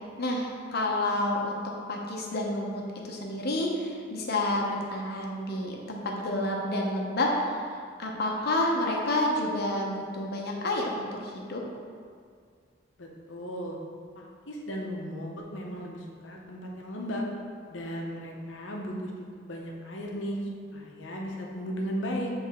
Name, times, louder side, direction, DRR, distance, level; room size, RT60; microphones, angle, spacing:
voice 1, 0.2-11.6, left 1 dB, 60° left, -1 dB, 0.9 m, -29 dB
voice 2, 13.0-13.8 14.2-17.2 17.7-20.4 20.7-22.3, equal, 85° left, -1 dB, 0.9 m, -36 dB
7.7 x 3.5 x 3.5 m, 2.1 s
head